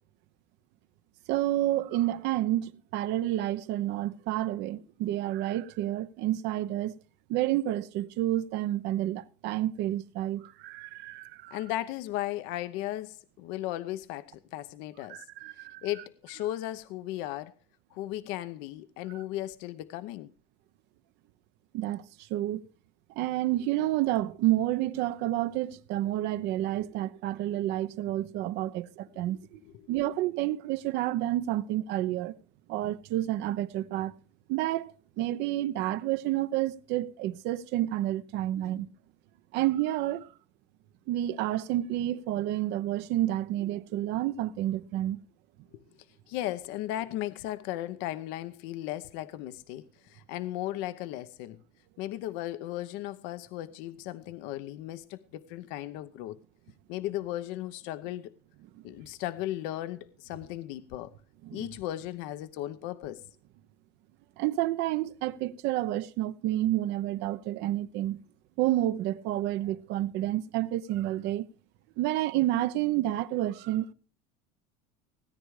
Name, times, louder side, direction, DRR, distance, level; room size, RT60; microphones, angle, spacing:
voice 1, 1.3-7.0 7.3-11.6 15.1-15.9 21.7-22.0 22.3-22.6 23.2-29.6 29.9-32.3 32.7-34.1 34.5-34.9 35.2-38.9 39.5-40.3 41.1-45.2 61.4-61.6 64.4-68.2 68.6-71.5 72.0-73.9, right 14 dB, 60° right, 0.9 m, -29 dB
voice 2, 11.5-15.2 15.6-17.5 17.9-20.3 29.6-29.7 46.3-51.6 52.0-56.4 56.9-58.3 58.8-61.1 61.5-63.2, left 14 dB, 70° left, 0.9 m, -36 dB
17.5 x 9.9 x 4.9 m
supercardioid pair, 105°, 20 cm